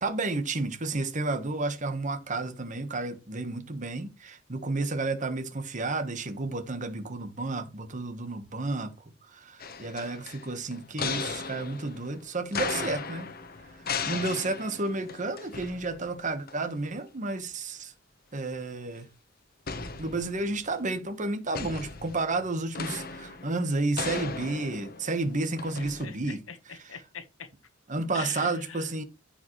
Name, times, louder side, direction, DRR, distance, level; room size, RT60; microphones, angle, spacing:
voice 1, 0.0-8.9 9.3-13.3 14.1-17.9 18.3-19.1 20.0-26.4 26.8-26.9 27.9-29.0, right 3 dB, 40° right, 1.3 m, -31 dB
sound 1, 9.6-16.2 16.5-16.6 19.7-20.7 21.5-26.1, left 5 dB, 50° left, 1.1 m, -37 dB
voice 2, 25.8-27.5 28.1-28.9, left 6 dB, 85° left, 1.3 m, -43 dB
14.0 x 5.0 x 3.2 m
head